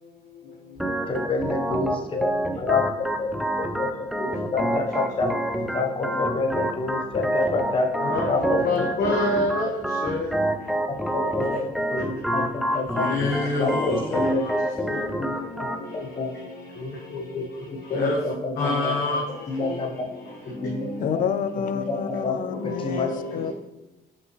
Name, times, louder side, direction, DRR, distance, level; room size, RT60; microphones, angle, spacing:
Organ, 0.8-15.8, right 1 dB, ahead, 0.5 m, -28 dB
voice 1, 1.1-2.3 2.6-2.8 3.2-3.3 3.6-3.9 4.2-5.3 5.7-7.9 8.3-8.6 11.1-11.6 11.9-13.1 13.5-14.5 15.6-16.3 16.8-17.4 17.9-18.9 19.5-19.9 20.6-20.9 21.9-22.0 22.2-22.4 22.6-23.1, left 3 dB, 30° left, 1.0 m, -27 dB
voice 2, 8.7-9.7 10.0-10.2 13.0-13.7 17.9-18.2 18.6-19.2, left 2 dB, 75° left, 1.1 m, -24 dB
voice 3, 21.0-23.5, left 8 dB, 55° left, 0.5 m, -29 dB
5.6 x 5.5 x 3.1 m
cardioid pair, 110°, 17 cm